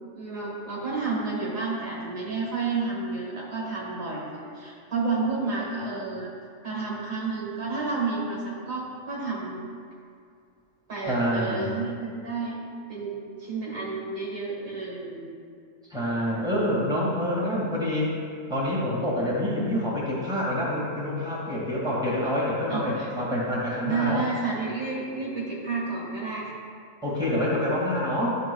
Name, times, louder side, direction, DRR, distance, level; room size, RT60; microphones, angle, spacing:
voice 1, 0.2-6.3 6.6-9.6 10.9-12.6 12.9-15.4 22.7-23.1 23.8-26.5, right 4 dB, 75° right, -4 dB, 2.0 m, -31 dB
voice 2, 11.1-11.8 15.9-18.1 18.5-24.3 27.0-28.4, left 1 dB, 5° right, -6 dB, 1.8 m, -27 dB
10.5 x 6.5 x 2.3 m, 2.2 s
omnidirectional pair, 1.4 m